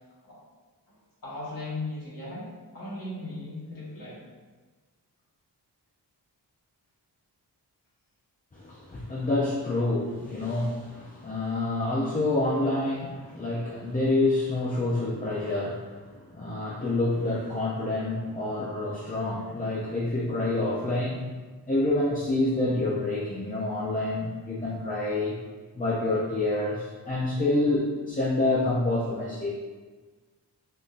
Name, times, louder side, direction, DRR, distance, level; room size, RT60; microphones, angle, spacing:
voice 1, 1.2-2.5 2.7-4.2, left 2 dB, 50° left, -8 dB, 1.4 m, -37 dB
voice 2, 8.5-21.3 21.7-25.4 25.7-29.5, left 2 dB, 20° left, -6 dB, 0.4 m, -27 dB
3.6 x 2.6 x 2.4 m, 1.4 s
wide cardioid pair, 70°, 42 cm